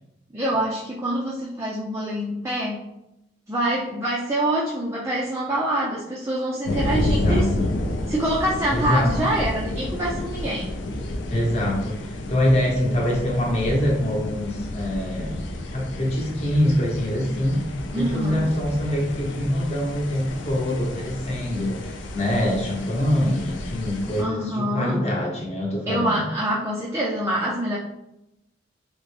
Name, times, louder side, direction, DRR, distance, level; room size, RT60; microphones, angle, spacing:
voice 1, 0.3-2.9 3.5-7.7 8.1-10.7 17.9-18.5 24.2-25.0 25.9-27.8, right 1 dB, 15° right, -5 dB, 0.4 m, -25 dB
sound 1, 6.6-24.2, left 1 dB, 65° left, 0.5 m, -31 dB
voice 2, 6.9-7.7 8.7-9.1 11.3-15.3 15.7-17.6 17.9-26.2, left 1 dB, 35° left, -3 dB, 0.9 m, -24 dB
3.8 x 2.1 x 3.1 m, 0.86 s
head